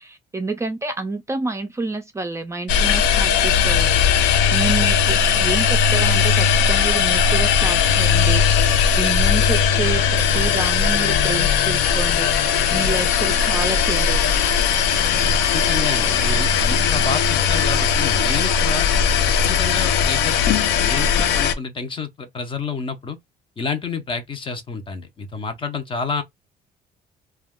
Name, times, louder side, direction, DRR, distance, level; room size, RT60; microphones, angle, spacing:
voice 1, 0.0-4.0 4.2-8.4 9.0-12.3 12.7-14.4, right 3 dB, 15° right, 0.4 m, -28 dB
sound 1, 2.7-21.5, left 7 dB, 90° left, 0.5 m, -18 dB
voice 2, 15.2-18.9 19.2-23.2 23.6-26.2, left 4 dB, 30° left, 0.6 m, -29 dB
2.3 x 2.2 x 3.5 m
cardioid pair, 110°, 17 cm